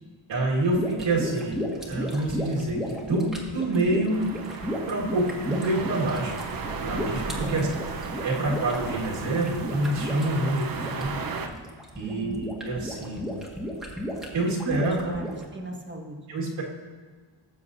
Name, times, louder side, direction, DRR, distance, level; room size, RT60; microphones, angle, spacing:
voice 1, 0.3-1.6 1.9-4.2 4.9-6.4 6.8-7.7 8.2-11.2 12.0-13.3 14.3-15.1 16.3-16.6, right 2 dB, 70° right, -4 dB, 2.0 m, -27 dB
sound 1, 0.7-15.4, equal, ahead, 1.7 m, -34 dB
sound 2, 4.1-11.5, right 4 dB, 45° right, 0.9 m, -35 dB
voice 2, 7.3-7.7 12.0-12.4 14.5-16.2, right 1 dB, 25° right, 2 dB, 1.5 m, -37 dB
15.5 x 7.0 x 2.7 m, 1.5 s
cardioid pair, 100°, 48 cm